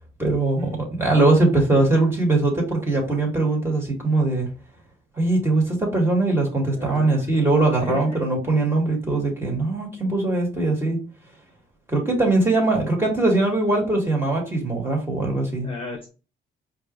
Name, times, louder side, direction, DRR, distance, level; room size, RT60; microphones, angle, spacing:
voice 1, 0.2-4.5 5.2-11.0 11.9-15.7, right 2 dB, 10° right, -1 dB, 2.2 m, -21 dB
voice 2, 6.7-7.3 7.8-8.2 10.9-11.0 15.4-16.1, left 3 dB, 25° left, 1 dB, 1.1 m, -35 dB
4.9 x 2.7 x 3.1 m, 0.34 s
cardioid pair, 90°, 20 cm